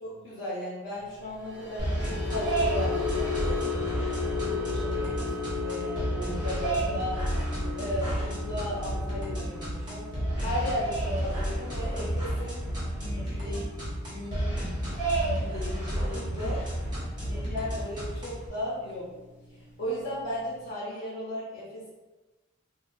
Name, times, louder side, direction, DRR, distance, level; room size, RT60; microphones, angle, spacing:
voice 1, 0.0-3.8 4.2-7.2 7.7-10.0 10.4-12.6 12.9-14.7 15.1-16.6 17.2-19.1 19.8-21.9, left 1 dB, 60° left, -11 dB, 0.9 m, -36 dB
sound 1, 1.4-17.7 18.1-18.4 18.7-19.0, left 5 dB, 5° right, 0.4 m, -36 dB
sound 2, 1.8-18.5, right 1 dB, 20° right, 1.0 m, -31 dB
2.8 x 2.3 x 2.5 m, 1.1 s
head